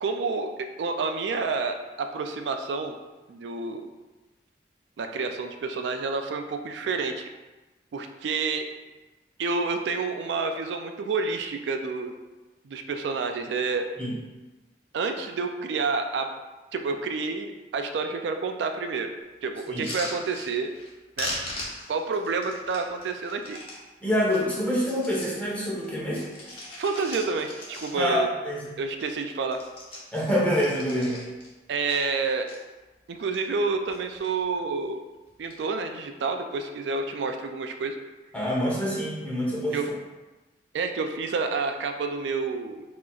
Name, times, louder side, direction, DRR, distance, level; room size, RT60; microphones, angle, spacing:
voice 1, 0.0-3.0 3.3-3.8 5.0-7.3 7.9-8.7 9.4-12.1 12.6-13.9 14.9-16.3 16.7-19.1 19.4-20.7 21.2-21.3 21.9-23.6 26.8-28.3 28.8-29.6 31.7-32.5 33.1-35.1 35.4-38.0 39.7-39.9 40.7-42.8, right 4 dB, 80° right, 6 dB, 0.4 m, -29 dB
sound 1, 19.7-20.9 21.2-23.8 24.2-25.4 25.8-28.2 28.6-28.7 28.9-29.2 29.5-31.5 31.9-32.6 33.1-33.6 33.9-34.4 35.3-35.6, left 1 dB, 30° left, 1.0 m, -39 dB
voice 2, 24.0-26.2 27.9-28.7 30.1-31.2 38.3-39.8, equal, 10° left, -6 dB, 1.1 m, -26 dB
6.1 x 2.9 x 2.4 m, 1.2 s
head